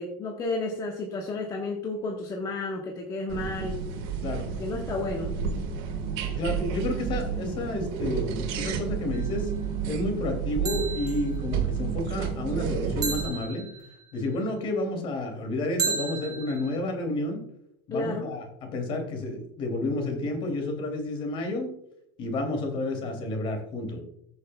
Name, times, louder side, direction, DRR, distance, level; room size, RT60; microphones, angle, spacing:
voice 1, 0.0-3.8 4.5-5.4 17.9-18.3, left 3 dB, 35° left, 0 dB, 1.4 m, -32 dB
sound 1, 3.3-13.3, right 7 dB, 65° right, 1.9 m, -31 dB
voice 2, 6.4-9.5 9.9-13.7 14.1-17.4 17.9-18.4 18.7-21.7 22.2-24.0, left 2 dB, 50° left, 3 dB, 2.8 m, -30 dB
sound 2, 9.1-9.5 10.7-11.4 13.0-14.1 15.8-16.8, right 5 dB, 35° right, 2.6 m, -33 dB
15.0 x 6.4 x 2.3 m, 0.78 s
supercardioid pair, 115°, 12 cm